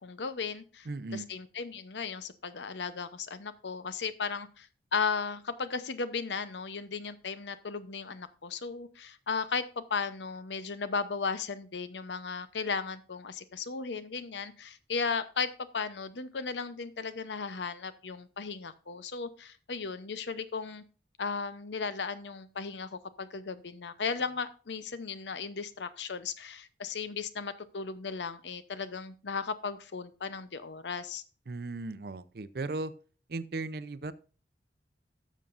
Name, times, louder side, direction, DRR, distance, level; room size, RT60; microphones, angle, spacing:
voice 1, 0.0-20.8 21.2-31.2, left 5 dB, 80° left, 13 dB, 0.7 m, -36 dB
voice 2, 0.9-1.3 31.5-32.9 33.3-34.1, right 3 dB, 60° right, 15 dB, 0.5 m, -36 dB
12.5 x 7.4 x 2.5 m, 0.36 s
head